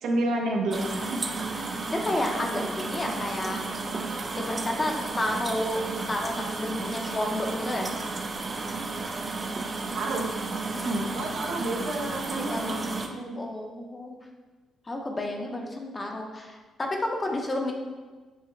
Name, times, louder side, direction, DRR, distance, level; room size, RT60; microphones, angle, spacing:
voice 1, 0.0-1.2 9.9-10.3 10.8-13.4, right 1 dB, 75° right, 0 dB, 0.6 m, -30 dB
sound 1, 0.7-13.1, right 3 dB, 35° right, 0.4 m, -33 dB
voice 2, 1.9-3.6 4.3-5.8 6.1-7.9 10.7-11.0 12.5-12.7 13.4-14.2 14.9-17.7, left 1 dB, 25° left, 2 dB, 0.6 m, -31 dB
6.2 x 2.1 x 3.1 m, 1.3 s
cardioid pair, 90°, 0 cm